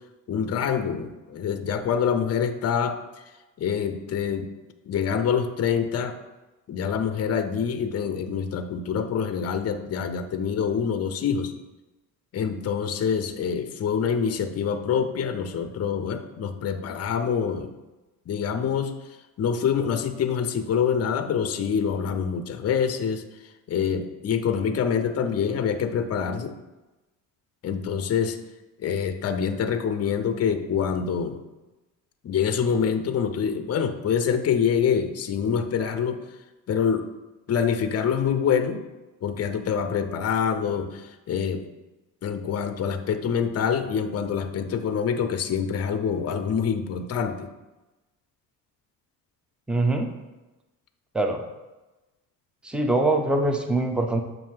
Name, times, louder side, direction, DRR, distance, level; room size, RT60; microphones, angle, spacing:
voice 1, 0.3-3.0 3.6-4.5 4.9-6.2 6.7-11.5 12.3-17.7 18.3-18.9 19.4-23.2 23.7-26.5 27.6-28.4 28.8-31.4 32.2-36.2 36.7-37.1 37.5-38.8 39.2-41.6 42.2-47.5, left 7 dB, 35° left, 9 dB, 0.6 m, -26 dB
voice 2, 49.7-50.1 51.1-51.4 52.6-54.2, right 2 dB, ahead, 4 dB, 0.6 m, -23 dB
7.3 x 2.7 x 5.6 m, 1.1 s
cardioid pair, 90°, 41 cm